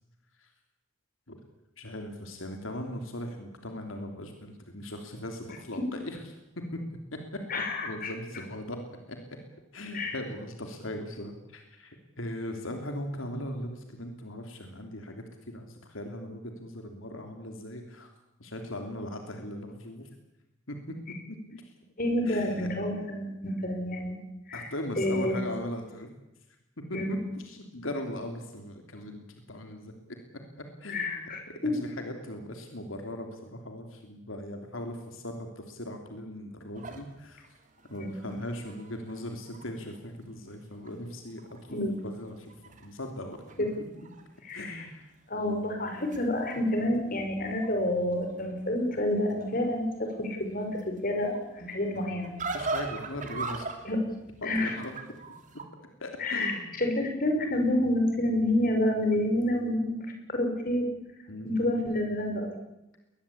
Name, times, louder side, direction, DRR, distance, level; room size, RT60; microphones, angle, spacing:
voice 1, 1.8-6.2 6.6-6.8 7.1-7.4 7.8-8.8 9.1-9.2 9.7-18.1 18.4-20.1 20.7-21.0 21.3-21.7 22.2-22.7 24.5-26.1 26.9-29.9 30.6-31.4 31.7-37.4 37.9-41.8 42.0-42.5 42.8-43.4 44.5-45.1 52.5-53.7 54.4-54.9 56.0-56.7 61.3-61.6, left 1 dB, 80° left, 4 dB, 3.1 m, -39 dB
voice 2, 7.5-8.1 9.9-10.2 22.0-24.2 24.5-24.7 25.0-25.4 26.9-27.2 30.9-31.7 37.9-38.2 41.7-41.9 43.6-43.7 44.4-44.8 45.3-52.3 53.8-54.0 54.4-54.8 56.2-60.9 61.4-62.5, left 1 dB, 45° left, 4 dB, 5.4 m, -29 dB
sound 1, 36.7-40.0 40.4-40.5 40.8-41.6 41.9-44.2 44.5-45.0 45.7-55.6, right 3 dB, 40° right, 3.1 m, -41 dB
21.5 x 20.5 x 8.7 m, 0.93 s
head